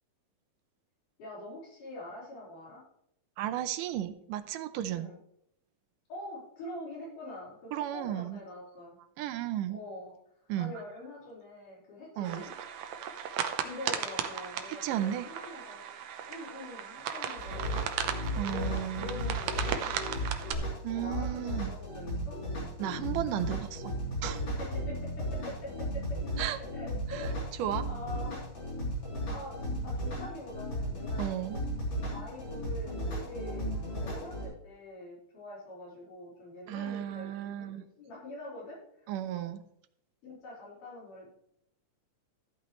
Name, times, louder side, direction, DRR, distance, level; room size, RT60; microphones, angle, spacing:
voice 1, 1.2-2.8 4.9-5.2 6.1-9.0 9.7-10.1 10.6-12.5 13.6-15.8 16.3-17.9 18.3-22.4 24.6-26.2 26.7-28.5 29.3-31.5 32.1-39.4 40.2-41.4, left 1 dB, 70° left, -6 dB, 6.0 m, -45 dB
voice 2, 3.4-5.1 7.7-8.4 9.2-9.8 10.5-10.7 12.2-12.5 14.7-15.3 18.4-19.1 20.8-21.7 22.8-23.9 24.2-24.4 26.4-26.6 27.1-27.3 27.6-27.9 31.2-31.6 36.7-37.8 39.1-39.6, right 12 dB, 85° right, 11 dB, 2.3 m, -34 dB
sound 1, 12.2-20.5, right 8 dB, 70° right, 1.6 m, -36 dB
sound 2, 17.4-34.4, equal, 35° left, 3.8 m, -35 dB
13.5 x 8.5 x 3.1 m, 0.73 s
omnidirectional pair, 3.7 m